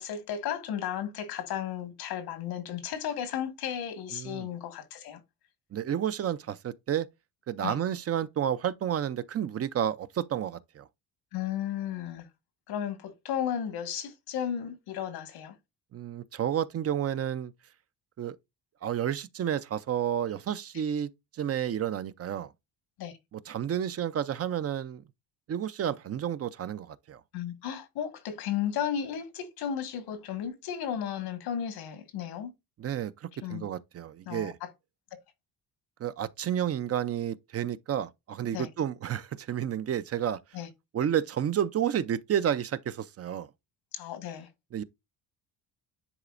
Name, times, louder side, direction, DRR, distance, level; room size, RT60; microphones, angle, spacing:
voice 1, 0.0-5.2 7.6-7.7 11.3-12.3 12.7-15.5 23.0-23.2 27.3-32.5 33.4-33.6 34.3-34.7 38.5-38.7 40.5-40.7 43.9-44.5, left 9 dB, 85° left, 1.8 m, -34 dB
voice 2, 4.1-4.5 5.7-7.1 7.5-10.9 15.9-17.5 18.2-18.4 18.8-22.5 23.3-25.0 25.5-27.2 32.8-34.6 36.0-40.4 40.9-43.5 44.7-44.8, right 9 dB, 40° right, 0.5 m, -31 dB
9.9 x 4.1 x 2.5 m
cardioid pair, 110°, 37 cm